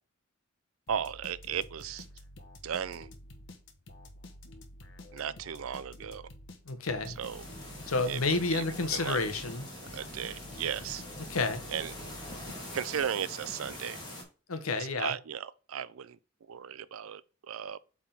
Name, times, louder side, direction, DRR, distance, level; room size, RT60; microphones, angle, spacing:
sound 1, 0.9-13.1, left 1 dB, 60° left, 1.0 m, -50 dB
voice 1, 0.9-2.1 2.6-3.1 5.1-6.3 7.2-7.5 8.1-9.4 9.9-11.0 11.7-11.9 12.7-14.0 15.0-16.2 16.5-17.2 17.5-17.8, right 8 dB, 80° right, 0.4 m, -36 dB
voice 2, 6.7-7.2 7.9-9.7 11.2-11.6 14.5-15.1, left 3 dB, 85° left, 0.9 m, -30 dB
sound 2, 6.8-13.9, equal, ahead, 1.2 m, -52 dB
sound 3, 7.2-14.2, left 1 dB, 20° left, 2.0 m, -45 dB
8.3 x 3.6 x 3.8 m
head